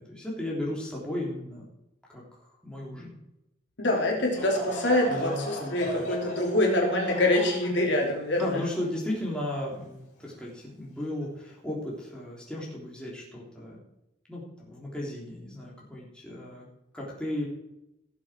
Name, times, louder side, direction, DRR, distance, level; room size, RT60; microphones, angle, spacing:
voice 1, 0.0-1.6 2.1-2.2 2.6-3.1 5.1-6.1 8.4-13.8 14.3-16.7 16.9-17.5, left 1 dB, 5° left, -5 dB, 3.3 m, -35 dB
voice 2, 3.8-8.6, left 1 dB, 60° left, 0 dB, 2.9 m, -25 dB
Laughter / Crowd, 4.3-9.7 10.3-10.4 11.2-11.4, equal, 40° left, 3.9 m, -38 dB
17.5 x 7.3 x 4.5 m, 0.87 s
head